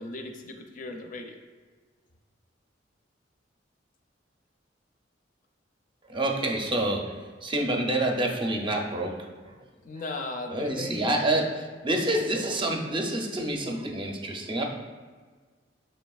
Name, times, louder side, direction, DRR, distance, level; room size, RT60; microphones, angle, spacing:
voice 1, 0.0-1.4 9.8-11.2, left 2 dB, 45° left, 4 dB, 0.4 m, -37 dB
voice 2, 6.1-7.0 7.4-9.1 10.5-11.4 11.8-14.6, right 1 dB, 25° right, 1 dB, 0.5 m, -27 dB
6.7 x 3.2 x 2.3 m, 1.5 s
head